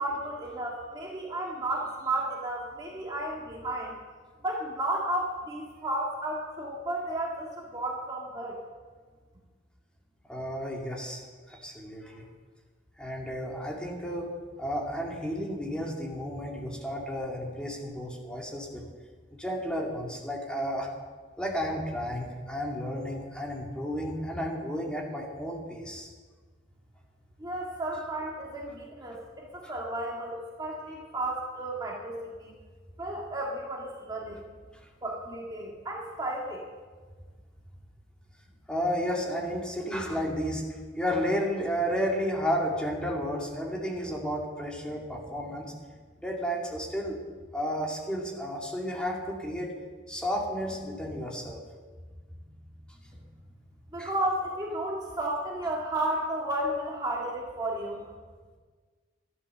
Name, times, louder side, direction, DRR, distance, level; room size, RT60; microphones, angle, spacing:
voice 1, 0.0-4.0 4.4-8.6 27.4-32.5 33.0-34.4 35.0-36.6 53.9-58.1, right 1 dB, 20° right, -2 dB, 1.8 m, -33 dB
voice 2, 10.3-11.2 11.5-12.2 13.0-14.3 14.6-18.8 19.4-20.9 21.4-26.1 29.6-29.7 38.7-45.7 46.2-47.2 47.5-49.7 50.1-51.6 53.0-53.2 54.0-54.1, equal, 5° left, -2 dB, 2.3 m, -32 dB
13.0 x 11.5 x 6.8 m, 1.5 s
head